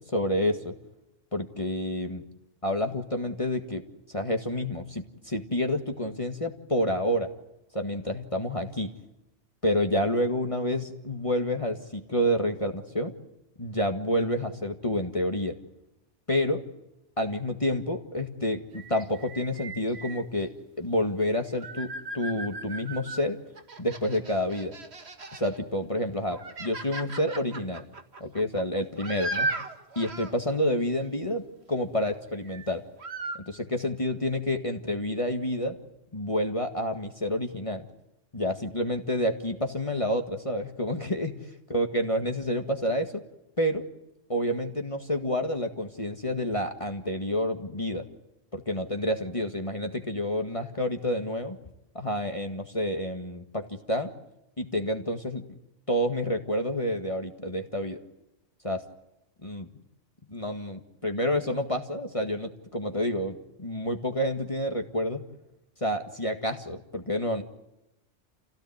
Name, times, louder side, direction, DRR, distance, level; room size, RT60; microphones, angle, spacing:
voice 1, 0.1-0.7 1.3-2.2 2.6-3.8 4.1-7.3 7.7-8.9 9.6-13.1 13.6-15.6 16.3-16.6 17.2-20.5 20.8-23.4 23.8-24.7 25.3-27.8 28.2-29.5 30.0-31.4 31.7-32.8 33.5-35.8 36.1-37.9 38.3-43.2 43.6-43.8 44.3-48.0 48.5-51.6 51.9-54.1 54.6-55.4 55.9-58.0 58.6-58.8 59.4-59.7 60.3-65.2 65.8-67.4, left 1 dB, 25° left, 4 dB, 1.9 m, -29 dB
sound 1, 18.7-20.2 21.2-23.2 23.6-25.6 26.0-30.3 32.4-32.7 33.0-33.4, right 2 dB, 60° right, 2.2 m, -37 dB
29.0 x 17.0 x 9.3 m, 0.91 s
omnidirectional pair, 1.3 m